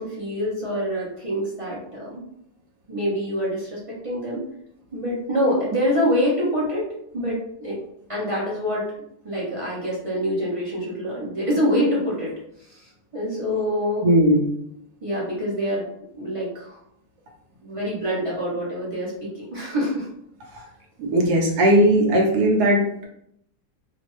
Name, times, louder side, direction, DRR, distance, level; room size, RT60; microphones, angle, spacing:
voice 1, 0.0-2.2 2.9-4.4 4.9-6.9 7.1-7.8 8.1-8.9 9.2-12.3 12.7-14.1 15.0-15.8 16.1-16.8 17.6-20.1, equal, 30° right, -6 dB, 0.6 m, -25 dB
voice 2, 14.0-14.5 21.0-23.1, right 1 dB, 80° right, -1 dB, 1.3 m, -18 dB
3.3 x 2.0 x 3.1 m, 0.73 s
omnidirectional pair, 1.7 m